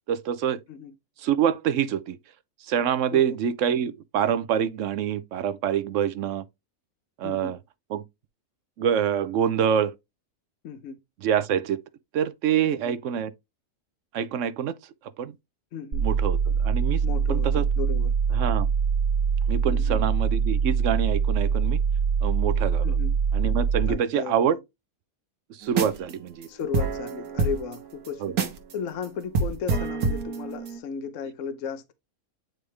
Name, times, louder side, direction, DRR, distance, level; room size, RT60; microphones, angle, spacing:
voice 1, 0.1-0.6 1.2-2.2 2.7-6.4 7.2-7.6 7.9-8.0 8.8-9.9 11.2-11.8 12.1-13.3 14.1-14.7 15.2-15.3 16.0-17.0 17.3-17.6 18.3-18.7 19.5-21.8 22.2-22.9 23.3-24.6 25.6-26.5 28.2-28.3, right 9 dB, 65° right, 0.9 m, -26 dB
voice 2, 7.2-7.6 10.6-11.0 12.6-13.0 15.7-16.0 17.0-18.1 19.7-20.0 22.8-23.1 23.9-24.4 26.5-28.3 28.7-31.9, left 6 dB, 65° left, 1.0 m, -35 dB
sound 1, 15.9-23.9, right 6 dB, 45° right, 0.6 m, -23 dB
sound 2, 25.7-26.1 26.4-26.5 26.7-28.7 29.0-29.1 29.3-30.8, right 4 dB, 85° right, 1.6 m, -27 dB
9.3 x 3.3 x 3.2 m
omnidirectional pair, 1.5 m